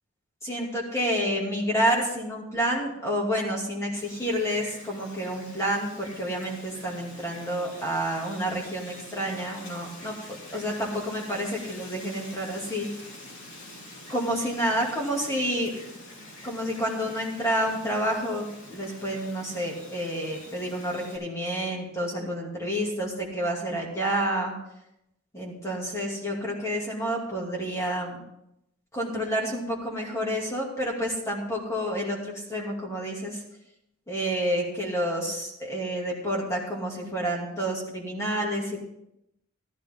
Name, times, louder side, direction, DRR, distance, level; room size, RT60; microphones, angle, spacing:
voice 1, 0.4-12.9 14.1-15.7 16.4-24.5 25.3-28.2 28.9-33.4 34.1-38.8, equal, 15° left, -2 dB, 2.5 m, -29 dB
Wind, 3.9-21.2, left 1 dB, 60° left, 3.6 m, -46 dB
13.5 x 12.0 x 3.8 m, 0.83 s
head